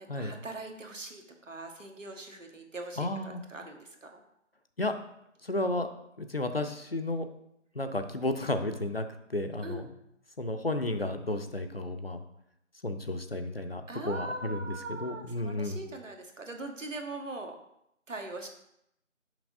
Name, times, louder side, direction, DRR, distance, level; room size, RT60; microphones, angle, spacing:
voice 1, 0.0-4.2 9.6-9.8 13.9-17.6 18.1-18.5, right 2 dB, 75° right, 4 dB, 1.2 m, -41 dB
voice 2, 3.0-3.4 4.8-5.0 5.4-5.9 6.2-7.3 7.7-9.0 9.3-9.9 10.4-12.2 12.8-15.8, left 2 dB, 50° left, 7 dB, 0.5 m, -32 dB
6.2 x 6.0 x 2.6 m, 0.78 s
figure-of-eight pair, 175°, 38 cm